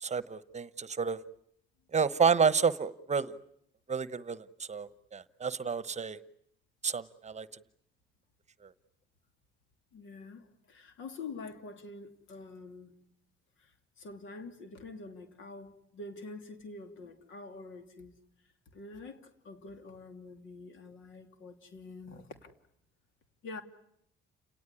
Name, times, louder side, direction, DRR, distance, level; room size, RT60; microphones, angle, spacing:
voice 1, 0.0-1.2 1.9-3.3 3.9-6.2 6.8-7.5 8.6-8.7, right 6 dB, 35° right, 1.0 m, -30 dB
voice 2, 9.9-12.9 13.6-18.1 18.7-22.5 23.4-23.6, left 3 dB, 75° left, 3.0 m, -46 dB
30.0 x 18.5 x 9.9 m
cardioid pair, 90°, 20 cm